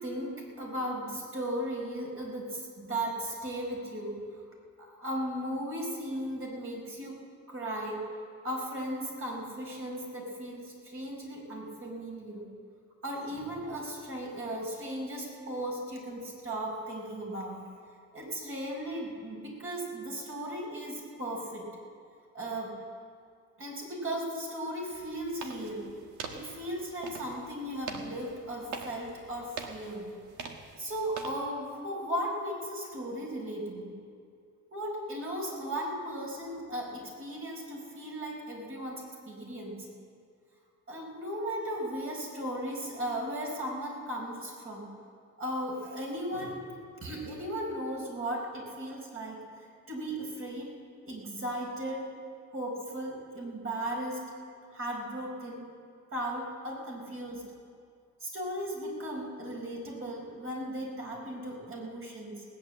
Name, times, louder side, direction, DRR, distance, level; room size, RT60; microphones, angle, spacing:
voice 1, 0.0-4.2 4.8-7.2 7.5-8.0 8.4-12.5 13.0-17.6 18.1-21.7 22.3-22.8 23.6-25.9 26.3-30.1 30.8-33.9 34.7-39.9 40.9-44.9 45.4-46.6 47.0-49.4 49.9-50.7 51.0-52.1 52.5-54.2 54.7-55.6 56.1-57.4 58.2-62.4, right 1 dB, 45° right, -1 dB, 4.9 m, -36 dB
sound 1, 24.9-31.4, right 5 dB, 85° right, 1.4 m, -44 dB
18.5 x 8.7 x 7.6 m, 2.3 s
cardioid pair, 90°, 30 cm